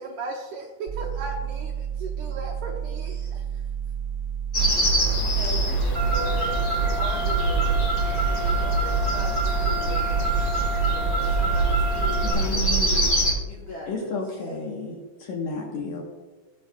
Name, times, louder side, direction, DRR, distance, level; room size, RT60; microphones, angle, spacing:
voice 1, 0.0-3.4 11.2-11.4, right 3 dB, 75° right, 0 dB, 1.9 m, -36 dB
sound 1, 0.9-12.3, right 8 dB, 45° right, 1.6 m, -31 dB
sound 2, 4.5-13.3, right 2 dB, 45° left, 1.2 m, -25 dB
voice 2, 5.3-7.8 8.2-10.5 10.9-12.9 13.4-14.2, left 3 dB, 80° left, -4 dB, 1.1 m, -39 dB
Car, 5.9-12.3, right 2 dB, 15° right, 0.3 m, -29 dB
voice 3, 12.2-13.1 13.9-16.0, left 3 dB, 65° left, -1 dB, 2.0 m, -32 dB
18.5 x 6.4 x 2.3 m, 1.2 s
omnidirectional pair, 4.3 m